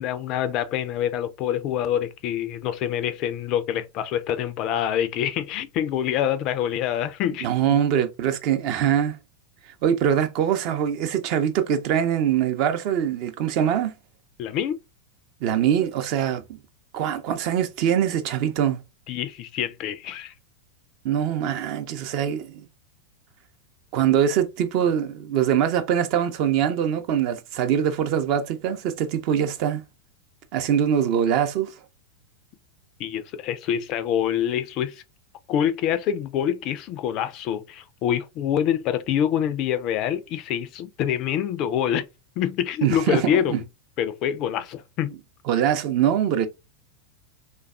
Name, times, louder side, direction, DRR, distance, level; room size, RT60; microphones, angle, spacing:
voice 1, 0.0-7.8 14.4-14.8 19.1-20.3 33.0-35.0 35.5-42.1 42.4-43.6 44.0-45.1, left 10 dB, 40° left, 0.3 m, -26 dB
voice 2, 7.4-9.2 9.8-13.9 15.4-16.6 16.9-18.8 21.0-22.6 23.9-29.8 30.5-31.7 42.8-43.6 45.5-46.5, right 9 dB, 45° right, 0.5 m, -23 dB
3.3 x 2.3 x 2.2 m
figure-of-eight pair, 90°, 0 cm